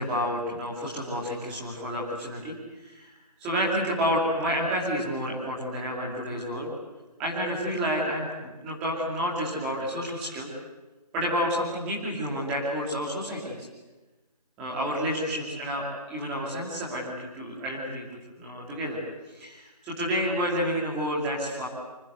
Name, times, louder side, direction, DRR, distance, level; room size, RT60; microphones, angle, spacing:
voice 1, 0.0-2.5 2.8-6.7 7.2-10.5 11.1-13.7 14.6-19.0 19.3-21.7, equal, 5° right, -5 dB, 2.7 m, -30 dB
26.0 x 25.5 x 8.1 m, 1.1 s
figure-of-eight pair, 175°, 20 cm